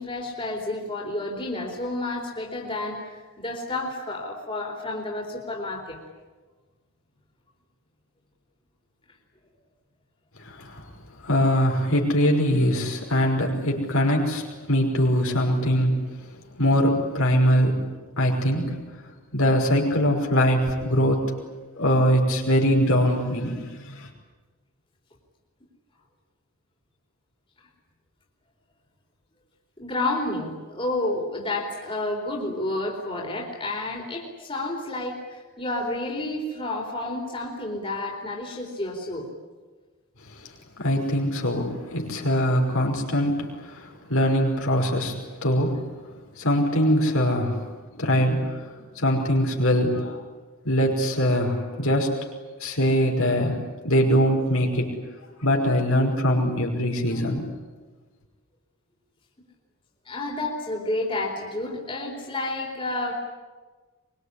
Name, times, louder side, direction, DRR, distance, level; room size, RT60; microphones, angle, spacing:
voice 1, 0.0-6.0 29.8-39.3 60.1-63.1, left 2 dB, 25° left, 0 dB, 4.1 m, -30 dB
voice 2, 10.4-10.8 11.2-14.4 14.7-16.0 16.5-17.8 18.2-18.8 19.3-21.3 21.8-24.1 40.8-45.8 46.4-47.7 48.0-50.2 50.6-52.1 52.6-53.6 53.8-54.9 55.4-57.5, equal, 70° left, 1 dB, 5.6 m, -22 dB
24.0 x 24.0 x 9.9 m, 1.3 s
head